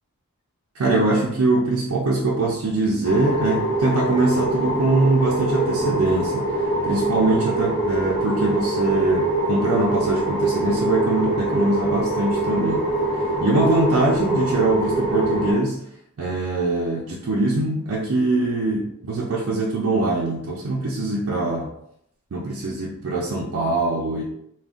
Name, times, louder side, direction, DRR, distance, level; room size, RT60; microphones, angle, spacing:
voice 1, 0.7-6.5 6.8-12.8 13.4-15.8 16.2-21.7 22.3-24.2, right 2 dB, 75° right, -4 dB, 0.5 m, -22 dB
sound 1, 3.0-15.5, right 2 dB, 50° left, 0.9 m, -24 dB
2.4 x 2.2 x 3.6 m, 0.74 s
head